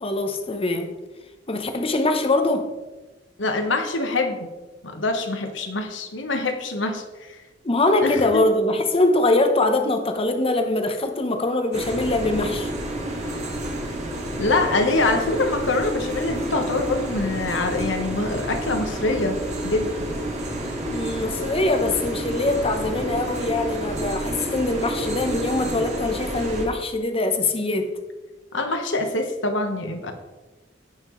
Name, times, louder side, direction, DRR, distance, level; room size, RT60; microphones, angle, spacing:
voice 1, 0.0-1.0 1.5-2.7 7.6-12.7 20.9-27.9, left 2 dB, 30° left, 6 dB, 0.9 m, -23 dB
voice 2, 3.4-4.5 4.8-7.0 7.3-7.4 8.0-8.4 14.4-20.1 28.5-30.1, left 2 dB, 85° left, 5 dB, 1.3 m, -24 dB
sound 1, 11.7-26.6, right 1 dB, 40° right, 2.0 m, -30 dB
16.5 x 5.9 x 3.2 m, 1.2 s
head